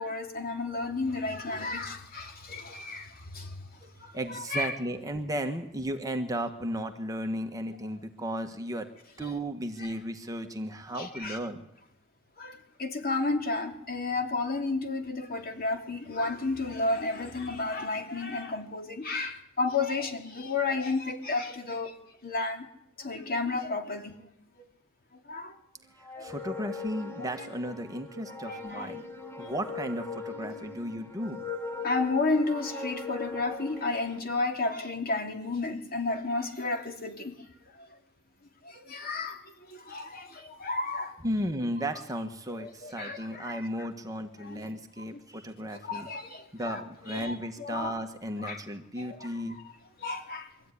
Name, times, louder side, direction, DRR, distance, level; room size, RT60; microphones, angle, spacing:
voice 1, 0.0-3.7 4.0-4.7 9.2-9.3 10.9-11.4 12.4-21.9 22.2-22.7 23.0-24.1 25.3-25.6 26.2-26.3 27.2-27.5 28.4-28.9 29.4-29.5 31.8-37.3 37.8-37.9 38.6-41.2 42.5-43.9 44.4-44.6 45.0-45.2 45.7-46.8 47.1-47.9 48.4-48.6 49.0-49.7 50.0-50.5, left 3 dB, 45° left, 3.0 m, -32 dB
voice 2, 4.1-8.9 9.2-11.7 26.0-29.0 29.4-31.4 41.2-46.1 46.5-49.6, equal, 15° right, 1.6 m, -35 dB
sound 1, 26.0-34.2, left 3 dB, 10° left, 2.0 m, -40 dB
24.0 x 14.5 x 9.9 m
head